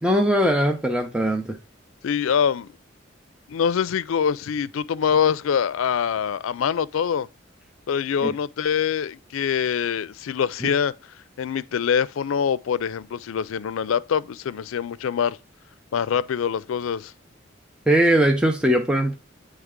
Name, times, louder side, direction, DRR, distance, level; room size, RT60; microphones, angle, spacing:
voice 1, 0.0-1.6 8.2-8.3 10.6-10.7 17.9-19.2, right 1 dB, 5° right, 0.6 m, -20 dB
voice 2, 2.0-2.7 3.5-7.3 7.9-10.9 11.4-15.4 15.9-17.1, left 7 dB, 85° left, 0.4 m, -24 dB
9.3 x 3.3 x 3.6 m
head